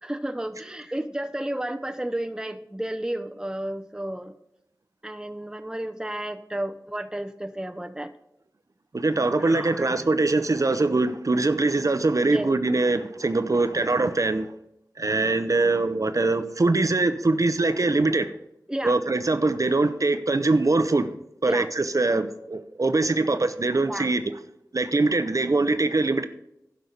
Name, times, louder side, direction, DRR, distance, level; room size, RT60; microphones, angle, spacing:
voice 1, 0.0-4.3 5.0-8.1 9.4-10.0 12.2-12.5 18.7-19.0 21.4-21.7 23.9-24.1, right 1 dB, 10° right, 9 dB, 0.7 m, -32 dB
voice 2, 8.9-14.5 15.0-18.3 18.8-21.1 21.4-24.2 24.7-26.3, right 3 dB, 55° right, 10 dB, 0.7 m, -23 dB
11.5 x 5.3 x 6.7 m, 0.81 s
wide cardioid pair, 50°, 7 cm